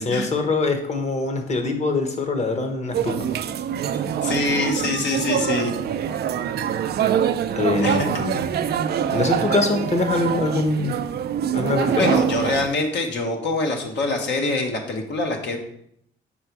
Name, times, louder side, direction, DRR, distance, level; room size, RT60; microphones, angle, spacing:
voice 1, 0.0-3.3 7.6-8.4 9.1-11.0 11.5-12.3, left 3 dB, 35° left, 6 dB, 1.0 m, -23 dB
sound 1, 2.9-12.7, right 9 dB, 55° right, 0.4 m, -24 dB
voice 2, 4.2-5.7 7.8-8.1 12.0-15.6, left 2 dB, 60° left, 3 dB, 1.0 m, -24 dB
5.0 x 4.3 x 4.6 m, 0.72 s
cardioid pair, 90°, 20 cm